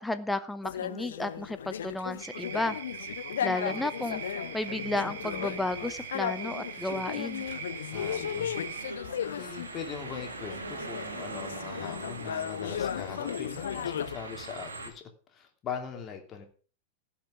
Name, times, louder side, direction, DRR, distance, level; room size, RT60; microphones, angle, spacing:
voice 1, 0.0-2.7 3.4-4.2 4.5-7.5, left 2 dB, 5° left, 11 dB, 0.7 m, -33 dB
sound 1, 0.6-9.7 10.1-14.1, left 9 dB, 65° left, 0.6 m, -36 dB
sound 2, 2.2-8.9, right 8 dB, 60° right, 1.3 m, -41 dB
sound 3, 4.0-14.9, right 3 dB, 75° right, 2.1 m, -43 dB
voice 2, 7.9-8.6 9.4-16.5, left 7 dB, 30° left, 4 dB, 2.7 m, -41 dB
16.5 x 6.0 x 6.2 m, 0.41 s
figure-of-eight pair, 90°, 0 cm